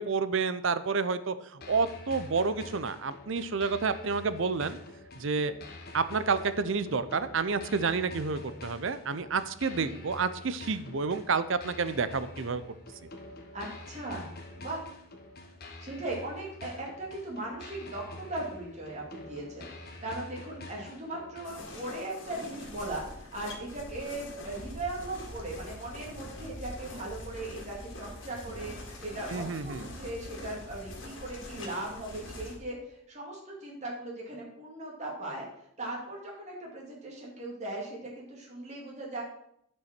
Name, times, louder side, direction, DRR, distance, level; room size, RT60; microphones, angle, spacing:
voice 1, 0.0-4.8 5.2-5.5 5.9-12.6 29.3-29.8, right 4 dB, 60° right, 13 dB, 0.6 m, -29 dB
sound 1, 1.6-21.6, left 2 dB, 45° left, 1.3 m, -47 dB
voice 2, 13.5-14.3 14.6-14.8 15.8-35.5 35.8-39.2, right 2 dB, 35° right, -3 dB, 2.5 m, -38 dB
sound 2, 21.4-32.6, left 1 dB, 60° left, 2.4 m, -44 dB
10.0 x 5.4 x 6.0 m, 0.73 s
head